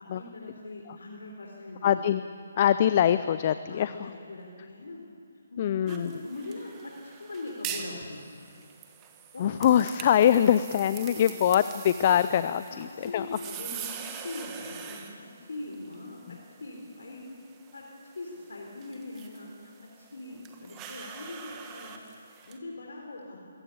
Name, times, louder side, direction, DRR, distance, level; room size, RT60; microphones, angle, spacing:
voice 1, 0.0-2.1 3.7-5.0 5.5-8.5 9.3-9.5 10.7-11.3 12.7-16.2 16.6-17.2 17.7-17.8 18.2-22.0 22.4-23.4, left 2 dB, 70° left, -1 dB, 3.7 m, -41 dB
voice 2, 1.8-2.2 2.6-3.9 5.6-6.1 9.4-13.3, left 10 dB, 40° left, 13 dB, 0.6 m, -23 dB
sound 1, 5.9-22.6, right 8 dB, 20° right, 1.8 m, -44 dB
22.5 x 17.0 x 8.5 m, 2.7 s
figure-of-eight pair, 145°, 0 cm